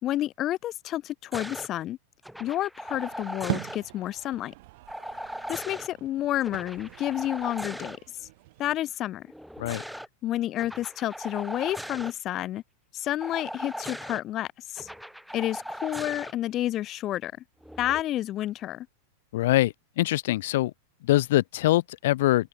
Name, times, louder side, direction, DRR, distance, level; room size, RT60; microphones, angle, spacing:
voice 1, 0.0-2.0 2.4-4.5 5.5-8.3 8.6-9.3 10.2-12.6 12.9-14.9 15.3-17.3 17.8-18.9, left 13 dB, 35° left, 1.8 m, -30 dB
sound 1, 1.3-1.7 2.2-3.8 4.9-5.9 6.4-8.0 9.3-10.1 10.6-12.1 13.2-14.2 14.7-16.3 17.6-18.0, equal, ahead, 4.0 m, -38 dB
sound 2, 2.9-8.8, right 22 dB, 60° right, 6.0 m, -41 dB
voice 2, 19.3-20.7 21.0-22.5, left 16 dB, 65° left, 1.2 m, -24 dB
hypercardioid pair, 115°, 0 cm